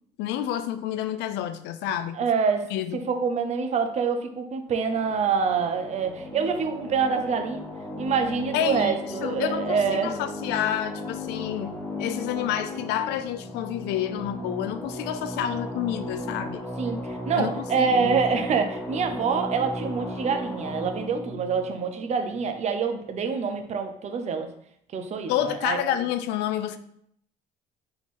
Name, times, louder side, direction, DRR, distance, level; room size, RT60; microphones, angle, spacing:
voice 1, 0.2-2.3 2.7-3.1 8.5-8.9 9.2-16.6 17.4-18.1 25.3-26.8, left 11 dB, 85° left, 11 dB, 0.4 m, -29 dB
voice 2, 2.1-7.6 8.0-10.2 16.8-24.5 24.9-25.8, right 5 dB, 40° right, 6 dB, 0.6 m, -26 dB
sound 1, 4.7-22.9, left 1 dB, 10° left, 0.8 m, -36 dB
3.8 x 3.0 x 4.2 m, 0.69 s
cardioid pair, 110°, 17 cm